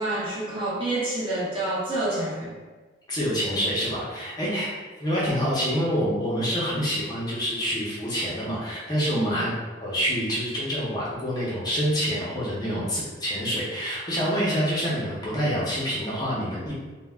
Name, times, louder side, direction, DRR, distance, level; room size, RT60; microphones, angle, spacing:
voice 1, 0.0-2.6 4.4-4.6 9.1-9.4 12.6-12.9, right 2 dB, 30° right, -7 dB, 0.7 m, -28 dB
voice 2, 3.1-4.7 5.0-9.5 9.8-16.8, equal, 20° left, -7 dB, 0.5 m, -27 dB
2.2 x 2.0 x 3.3 m, 1.3 s
head